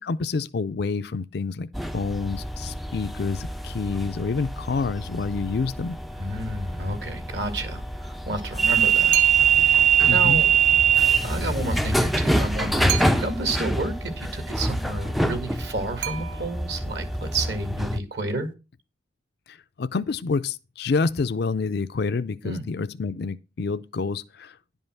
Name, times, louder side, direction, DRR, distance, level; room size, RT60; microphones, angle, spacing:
voice 1, 0.0-1.7 1.9-6.0 10.1-10.4 19.5-24.5, left 4 dB, 60° left, 0.4 m, -28 dB
sound 1, 1.7-18.0, right 5 dB, ahead, 0.4 m, -24 dB
voice 2, 6.2-9.2 9.5-10.5 11.2-18.5 22.4-22.7, right 2 dB, 60° right, 1.9 m, -31 dB
sound 2, 9.1-9.7 12.9-13.6 16.0-16.8, right 12 dB, 85° right, 0.7 m, -32 dB
10.5 x 5.4 x 6.0 m
head